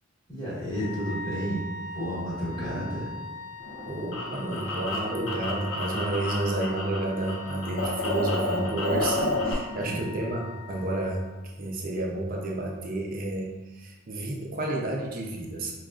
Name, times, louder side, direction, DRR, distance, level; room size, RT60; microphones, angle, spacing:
voice 1, 0.3-1.7 1.9-3.1 9.7-10.1, equal, 20° left, -10 dB, 1.4 m, -32 dB
Wind instrument woodwind instrument, 0.7-11.5, left 2 dB, 10° right, 0.9 m, -42 dB
sound 1, 3.6-7.0 7.2-9.5, left 2 dB, 75° left, 0.8 m, -30 dB
voice 2, 3.8-15.7, right 2 dB, 45° right, -1 dB, 0.5 m, -31 dB
5.0 x 2.3 x 2.4 m, 1.2 s
head